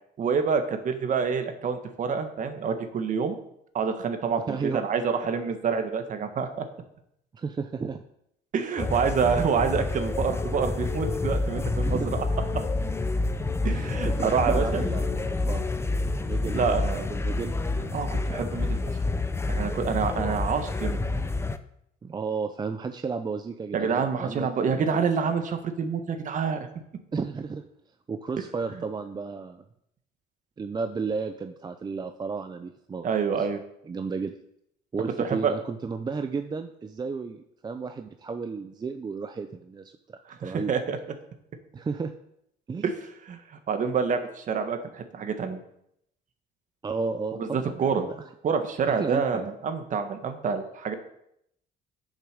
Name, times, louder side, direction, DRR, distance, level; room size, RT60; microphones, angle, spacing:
voice 1, 0.2-3.3 3.7-6.7 8.5-12.2 13.6-14.8 16.5-17.1 17.9-19.0 19.5-21.0 23.7-26.7 33.0-33.6 35.2-35.5 40.4-41.0 42.8-42.9 43.3-45.6 47.4-48.0 48.4-50.9, right 6 dB, 50° right, 7 dB, 1.5 m, -27 dB
voice 2, 4.5-4.8 7.3-8.0 11.9-12.1 13.6-15.6 16.3-17.6 22.0-24.9 27.1-27.6 28.1-29.6 30.6-33.1 33.3-33.5 33.8-34.3 34.9-40.7 41.7-42.1 42.7-42.8 46.8-48.2 48.9-49.5, right 4 dB, 25° right, 7 dB, 0.6 m, -33 dB
sound 1, 8.8-21.6, left 2 dB, 15° left, 0.6 m, -28 dB
8.2 x 7.0 x 6.6 m, 0.75 s
cardioid pair, 110°, 17 cm